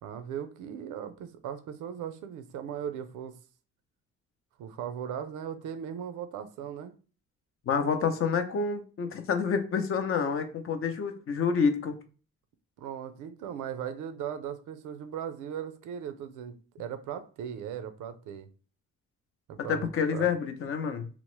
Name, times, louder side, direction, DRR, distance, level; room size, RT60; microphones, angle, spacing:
voice 1, 0.0-3.4 4.6-6.9 12.8-18.5 19.5-20.3, right 8 dB, 90° right, 0.5 m, -38 dB
voice 2, 7.7-12.0 19.6-21.1, left 6 dB, 45° left, 0.5 m, -28 dB
2.9 x 2.0 x 3.0 m
cardioid pair, 90°, 30 cm